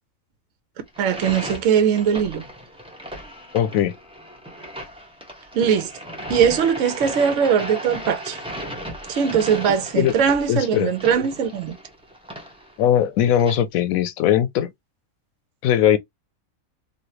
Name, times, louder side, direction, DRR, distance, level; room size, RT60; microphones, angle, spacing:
sound 1, 0.9-13.5, equal, 5° right, 0.9 m, -36 dB
voice 1, 1.0-2.4 5.5-5.9 6.3-8.4 9.1-11.8, right 7 dB, 70° right, 1.0 m, -20 dB
voice 2, 3.5-3.9 10.0-10.1 10.5-10.9 12.8-14.7 15.6-16.0, left 10 dB, 80° left, 1.0 m, -19 dB
3.2 x 2.6 x 2.8 m
omnidirectional pair, 1.4 m